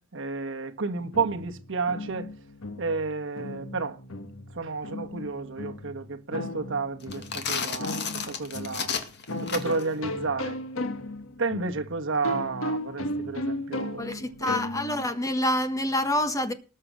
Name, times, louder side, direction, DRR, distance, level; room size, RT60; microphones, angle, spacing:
voice 1, 0.0-2.3 2.8-4.0 4.5-8.9 9.4-10.6 11.4-14.6, right 4 dB, 65° right, 1.3 m, -31 dB
sound 1, 0.9-15.2, left 1 dB, 75° left, 1.5 m, -36 dB
sound 2, 7.0-9.9, left 6 dB, 55° left, 2.2 m, -32 dB
voice 2, 14.0-16.5, left 1 dB, 15° left, 1.4 m, -27 dB
19.5 x 6.8 x 6.2 m
head